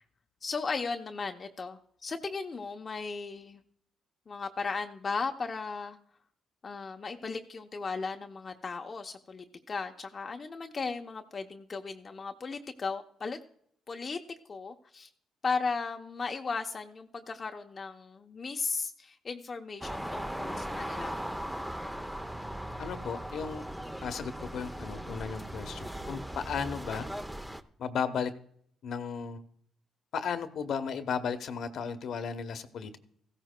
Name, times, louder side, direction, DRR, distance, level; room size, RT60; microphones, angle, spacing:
voice 1, 0.4-3.6 4.3-6.0 6.6-13.4 13.9-14.2 14.5-15.1 15.4-21.3, left 4 dB, 40° left, 4 dB, 0.7 m, -36 dB
sound 1, 19.8-27.6, equal, 5° right, 0.6 m, -38 dB
voice 2, 22.8-23.6 24.0-27.1 27.8-28.3 28.8-29.4 30.1-33.0, left 6 dB, 65° left, 10 dB, 0.9 m, -35 dB
16.0 x 14.0 x 2.2 m, 0.65 s
cardioid pair, 90°, 0 cm